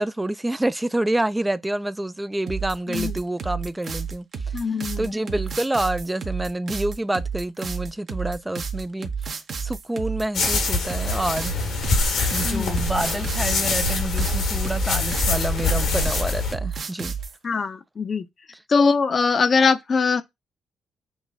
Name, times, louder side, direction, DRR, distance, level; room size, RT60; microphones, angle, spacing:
voice 1, 0.0-4.6 5.0-11.5 12.3-17.1, right 1 dB, 10° right, 0.3 m, -28 dB
sound 1, 2.5-17.4, right 6 dB, 60° right, 0.8 m, -31 dB
voice 2, 4.5-5.1 12.4-12.8 17.4-18.2 18.7-20.2, left 5 dB, 45° left, 0.6 m, -22 dB
sound 2, 10.3-16.5, left 3 dB, 80° left, 1.2 m, -24 dB
6.1 x 2.6 x 2.3 m
supercardioid pair, 60°, 0 cm